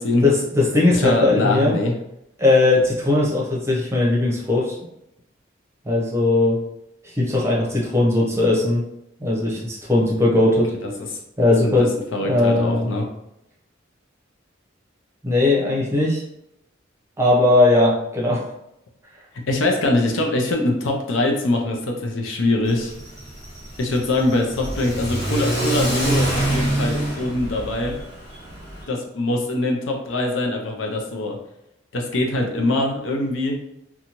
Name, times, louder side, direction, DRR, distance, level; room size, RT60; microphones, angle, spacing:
voice 1, 0.2-1.8 2.4-4.8 5.8-6.6 7.1-8.8 9.2-10.7 11.4-11.9 12.2-12.9 15.2-16.2 17.2-18.4, left 2 dB, 15° right, -4 dB, 0.7 m, -18 dB
voice 2, 0.9-1.9 10.8-11.2 11.6-13.1 19.5-22.9 23.8-28.0 28.9-31.4 31.9-33.6, left 2 dB, 85° left, 1 dB, 0.6 m, -23 dB
Car / Accelerating revving vroom, 22.7-28.8, right 1 dB, 60° left, 1.4 m, -26 dB
2.7 x 2.3 x 2.9 m, 0.81 s
head